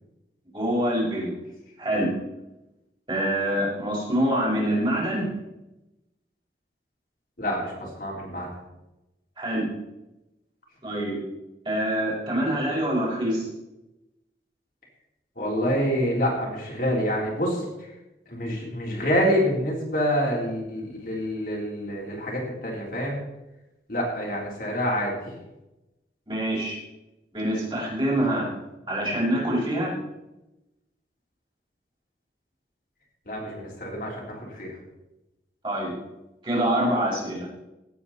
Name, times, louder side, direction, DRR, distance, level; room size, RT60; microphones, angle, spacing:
voice 1, 0.5-1.3 1.8-2.1 3.1-5.3 9.4-9.7 10.8-11.2 11.7-13.5 26.3-26.8 27.3-28.5 28.9-29.9 35.6-35.9 36.4-37.5, right 1 dB, 25° right, -6 dB, 5.4 m, -25 dB
voice 2, 7.4-8.5 15.4-17.9 18.3-23.2 23.9-25.3 33.3-34.8, equal, 50° left, -3 dB, 3.8 m, -27 dB
17.5 x 8.5 x 4.3 m, 0.97 s
head